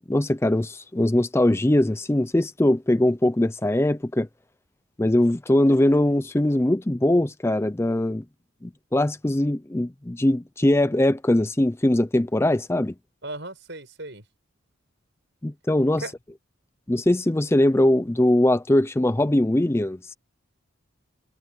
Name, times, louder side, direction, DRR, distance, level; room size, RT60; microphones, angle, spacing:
voice 1, 0.1-4.3 5.0-8.2 8.6-12.9 15.4-16.0 16.9-20.1, left 1 dB, 10° left, 0.4 m, -21 dB
voice 2, 13.2-14.2 16.0-16.1, right 2 dB, 60° right, 7.2 m, -36 dB
head